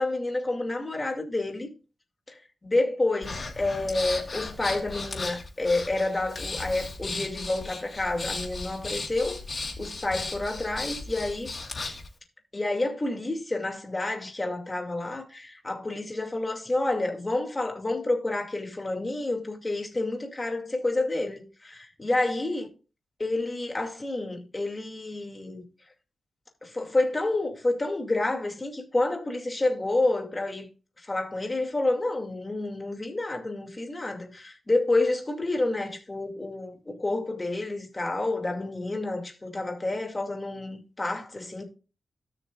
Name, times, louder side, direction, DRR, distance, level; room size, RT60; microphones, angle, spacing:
voice 1, 0.0-1.7 2.3-9.4 9.8-11.5 12.5-22.7 23.2-25.6 26.6-30.7 31.1-41.6, left 2 dB, 25° left, 2.4 m, -29 dB
Breathing, 3.2-12.1, left 3 dB, 40° left, 2.7 m, -36 dB
17.5 x 6.4 x 2.5 m
wide cardioid pair, 95°, 0 cm